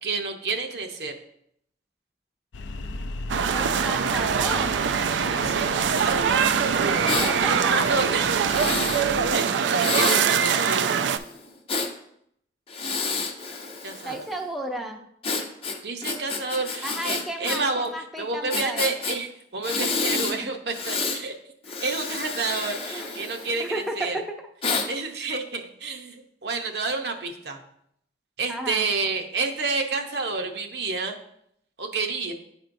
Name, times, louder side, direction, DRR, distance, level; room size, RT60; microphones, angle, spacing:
voice 1, 0.0-1.1 5.3-6.5 6.7-9.1 9.3-10.9 13.8-14.3 15.8-17.9 18.2-21.4 21.8-24.2 24.9-27.6 28.4-31.2 31.8-32.3, right 3 dB, 65° right, 4 dB, 0.7 m, -30 dB
sound 1, 2.5-9.3, left 2 dB, 85° left, 0.5 m, -37 dB
sound 2, 3.3-11.2, right 7 dB, 85° right, 0.3 m, -23 dB
voice 2, 3.5-4.9 6.8-7.7 14.0-15.0 16.8-18.9 19.8-20.0 20.3-20.4 21.7-21.8 22.9-23.1 23.6-24.3 28.5-28.9, right 1 dB, ahead, 1 dB, 0.5 m, -33 dB
Breathing, 7.1-7.3 8.4-9.1 9.8-11.9 12.7-14.3 15.2-17.6 17.9-18.0 18.5-19.2 19.6-20.4 20.7-21.2 21.6-23.8 24.6-24.9, left 4 dB, 30° left, 0.7 m, -29 dB
9.9 x 4.3 x 2.6 m, 0.72 s
head